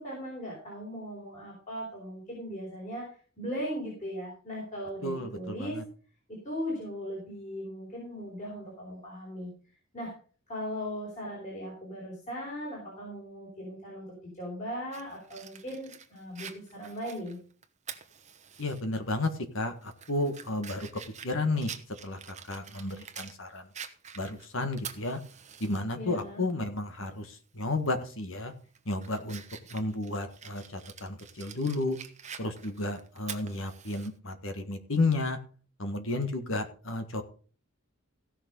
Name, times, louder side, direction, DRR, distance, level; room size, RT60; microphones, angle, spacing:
voice 1, 0.0-5.8 6.4-9.5 9.9-10.1 10.5-14.1 14.3-17.4 25.9-26.4, equal, 35° left, -4 dB, 4.5 m, -38 dB
voice 2, 5.0-5.8 18.6-20.9 21.2-21.7 22.0-23.7 24.2-25.2 25.6-28.5 28.8-29.4 29.7-32.0 32.4-35.4 35.8-37.2, left 2 dB, 65° left, 8 dB, 1.7 m, -32 dB
Fire, 14.9-18.8 19.2-19.3 19.8-23.4 23.7-25.8 26.2-26.3 27.8-28.0 28.5-34.1, right 8 dB, 35° right, 1.1 m, -46 dB
16.0 x 6.4 x 5.4 m, 0.41 s
head